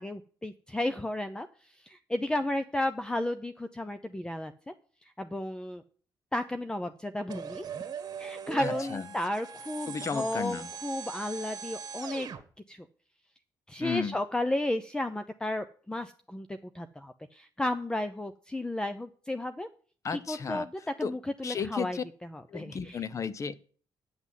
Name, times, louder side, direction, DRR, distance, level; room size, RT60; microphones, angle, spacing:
voice 1, 0.0-4.7 5.0-5.8 6.3-7.6 8.2-12.3 12.7-12.9 13.7-19.7 20.1-20.7 21.0-23.0, left 1 dB, 10° left, 10 dB, 0.6 m, -33 dB
sound 1, 7.3-12.4, right 6 dB, 55° right, 1.5 m, -40 dB
voice 2, 8.6-9.0 9.9-10.7 13.8-14.1 20.0-20.7 21.0-21.1 21.4-22.0 22.5-23.5, left 6 dB, 40° left, 16 dB, 0.8 m, -33 dB
9.5 x 6.2 x 7.4 m, 0.43 s
cardioid pair, 100°, 8 cm